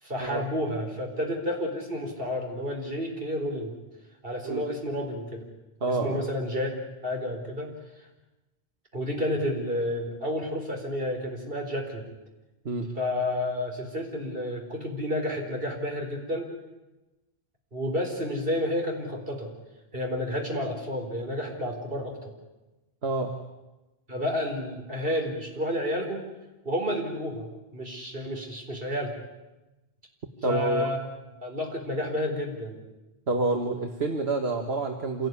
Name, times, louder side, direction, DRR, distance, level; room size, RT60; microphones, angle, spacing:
voice 1, 0.0-3.7 4.2-5.4 5.9-6.7 7.0-7.7 8.0-8.1 8.9-12.1 12.9-16.5 17.7-19.5 19.9-22.3 24.1-26.3 26.6-27.5 27.7-29.1 30.4-31.1 31.4-32.8, left 1 dB, 65° right, 2 dB, 4.7 m, -30 dB
voice 2, 5.8-6.2 12.7-12.9 23.0-23.4 30.4-30.9 33.3-35.3, right 2 dB, 85° right, 4 dB, 1.8 m, -28 dB
27.0 x 18.0 x 9.6 m, 1.1 s
omnidirectional pair, 1.0 m